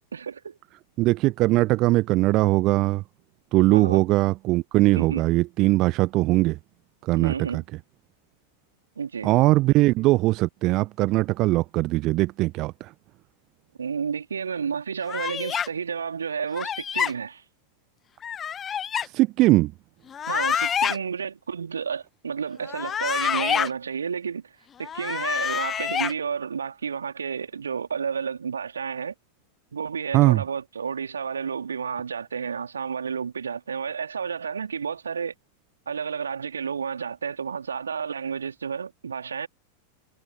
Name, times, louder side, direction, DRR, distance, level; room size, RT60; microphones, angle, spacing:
voice 1, 0.1-0.6 3.7-4.1 4.9-5.3 7.1-7.6 9.0-9.3 13.8-17.4 20.3-29.1 29.7-35.3 35.9-39.5, right 6 dB, 70° right, 3.6 m, -31 dB
voice 2, 1.0-3.0 3.5-6.6 7.0-7.6 9.2-12.9 19.0-19.7 30.1-30.4, right 19 dB, 40° right, 0.7 m, -21 dB
sound 1, 15.1-15.7 16.5-17.1 18.2-19.1 20.1-21.0 22.6-23.7 24.8-26.1, left 8 dB, 25° left, 1.2 m, -27 dB
figure-of-eight pair, 90°, 0 cm